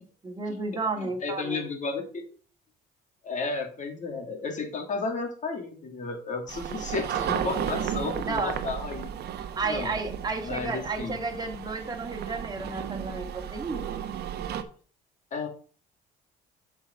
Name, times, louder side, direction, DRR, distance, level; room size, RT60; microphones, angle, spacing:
voice 1, 0.2-1.6 8.3-8.6 9.6-14.0, right 3 dB, 20° right, 3 dB, 1.9 m, -32 dB
voice 2, 1.0-2.2 3.2-9.1 9.6-9.9 10.4-11.2 15.3-15.5, left 4 dB, 45° left, 3 dB, 2.7 m, -33 dB
sound 1, 6.5-14.6, right 9 dB, 65° right, 1.1 m, -34 dB
7.4 x 5.1 x 5.4 m, 0.41 s
cardioid pair, 105°, 18 cm